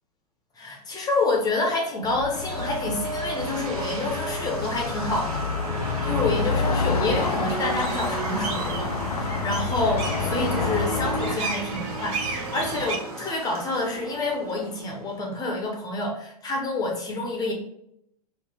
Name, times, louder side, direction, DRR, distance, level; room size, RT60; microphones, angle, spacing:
voice 1, 0.6-17.5, left 2 dB, 20° left, 0 dB, 0.9 m, -28 dB
sound 1, 2.0-11.4, left 5 dB, 75° left, 0.5 m, -29 dB
sound 2, 2.3-15.4, right 3 dB, 65° right, 1.0 m, -34 dB
sound 3, 7.1-13.0, right 3 dB, 35° right, 0.9 m, -34 dB
4.9 x 2.6 x 3.4 m, 0.74 s
figure-of-eight pair, 100°, 20 cm